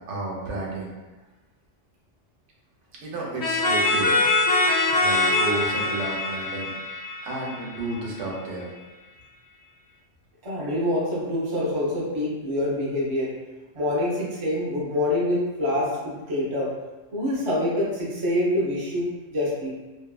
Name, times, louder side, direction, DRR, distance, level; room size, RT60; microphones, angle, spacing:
voice 1, 0.1-0.9 3.0-4.2 5.0-6.7 7.2-8.7, right 2 dB, 85° right, -3 dB, 1.0 m, -31 dB
sound 1, 3.4-8.0, left 2 dB, 35° left, 0.3 m, -23 dB
voice 2, 10.4-13.3 13.7-16.7 17.1-19.7, left 1 dB, 35° right, -6 dB, 0.5 m, -26 dB
2.6 x 2.3 x 2.3 m, 1.1 s
omnidirectional pair, 1.2 m